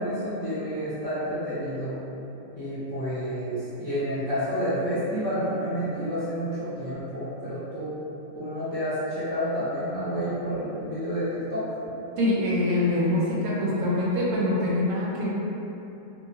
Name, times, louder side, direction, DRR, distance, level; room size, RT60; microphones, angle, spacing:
voice 1, 0.0-2.0 2.5-7.9 8.3-11.6, equal, 25° left, -13 dB, 0.4 m, -29 dB
voice 2, 12.2-15.3, left 1 dB, 70° right, -6 dB, 0.9 m, -24 dB
2.8 x 2.1 x 2.6 m, 2.9 s
omnidirectional pair, 1.4 m